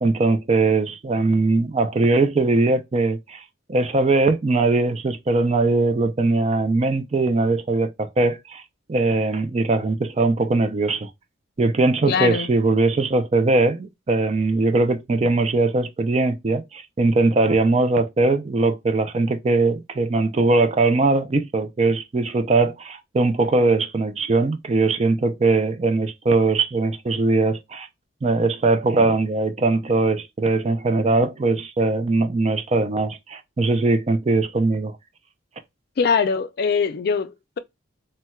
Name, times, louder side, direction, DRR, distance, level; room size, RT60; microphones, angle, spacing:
voice 1, 0.0-3.4 3.7-8.6 8.9-11.1 11.6-27.9 28.2-34.9, right 3 dB, 35° right, 0.4 m, -20 dB
voice 2, 12.1-12.5 36.0-37.6, left 6 dB, 55° left, 0.4 m, -22 dB
4.2 x 2.2 x 2.2 m
head